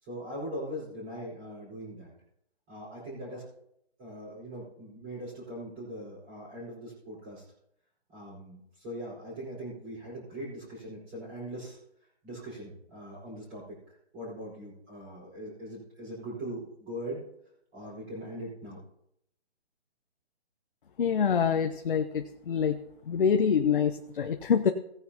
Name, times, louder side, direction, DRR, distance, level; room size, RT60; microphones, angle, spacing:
voice 1, 0.0-2.1 2.7-3.4 4.0-7.5 8.1-11.8 12.2-13.6 14.1-17.2 17.7-18.8, equal, 20° right, -7 dB, 4.9 m, -41 dB
voice 2, 21.0-22.8 23.0-24.7, left 7 dB, 55° left, 6 dB, 0.9 m, -26 dB
17.5 x 9.5 x 2.9 m, 0.76 s
hypercardioid pair, 160°, 32 cm